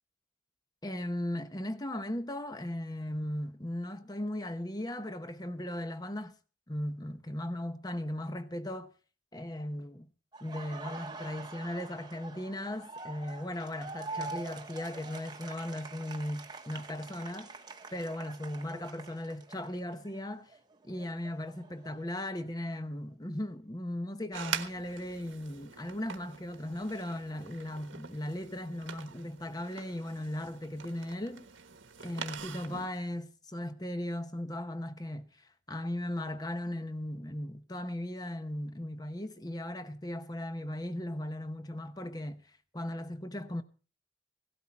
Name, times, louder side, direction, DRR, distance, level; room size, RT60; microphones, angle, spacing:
voice 1, 0.8-6.3 6.7-8.9 9.3-10.1 10.4-17.5 17.9-20.5 20.8-31.5 32.0-42.5 42.7-43.6, left 1 dB, 20° left, 0.9 m, -37 dB
Laughter, 10.3-20.2 20.5-22.5, right 3 dB, 20° right, 1.1 m, -45 dB
sound 1, 24.3-32.9, right 7 dB, 75° right, 1.3 m, -44 dB
17.0 x 12.5 x 4.3 m
head